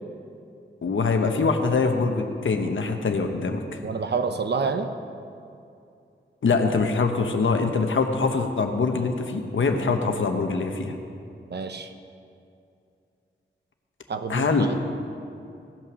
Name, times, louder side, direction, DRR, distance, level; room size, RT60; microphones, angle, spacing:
voice 1, 0.8-3.6 6.4-10.9 14.3-14.7, left 4 dB, 75° left, 5 dB, 1.0 m, -23 dB
voice 2, 3.8-4.9 11.5-11.9 14.1-14.5, right 5 dB, 60° right, 8 dB, 0.8 m, -27 dB
16.5 x 5.7 x 6.2 m, 2.6 s
wide cardioid pair, 105°, 20 cm